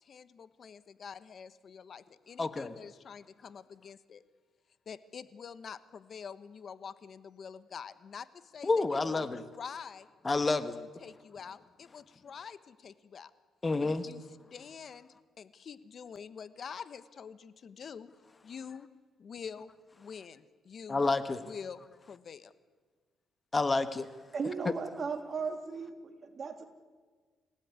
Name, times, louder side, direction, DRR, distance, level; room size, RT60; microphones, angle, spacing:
voice 1, 0.0-4.2 4.9-10.1 10.6-13.3 13.8-18.1 18.4-18.9 19.2-19.7 20.0-21.0 21.4-21.8 22.1-22.5, left 6 dB, 50° left, 14 dB, 1.2 m, -46 dB
voice 2, 2.4-2.7 8.6-9.4 10.2-10.8 13.6-14.1 20.9-21.4 23.5-24.1, left 3 dB, 25° left, 11 dB, 1.5 m, -29 dB
voice 3, 24.3-26.6, right 5 dB, 45° right, 6 dB, 3.1 m, -36 dB
27.0 x 17.0 x 9.6 m, 1.5 s
cardioid pair, 90°, 0 cm